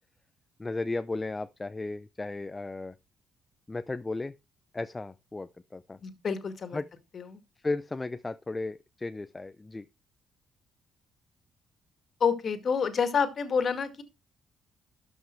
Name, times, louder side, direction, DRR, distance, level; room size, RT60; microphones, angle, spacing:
voice 1, 0.6-2.9 3.7-4.3 4.7-6.0 6.7-6.9 7.6-9.9, left 2 dB, 20° left, 0.5 m, -35 dB
voice 2, 6.0-6.8 7.1-7.4 12.2-14.0, left 6 dB, 50° left, 2.0 m, -28 dB
13.0 x 5.4 x 4.5 m
cardioid pair, 90°, 0 cm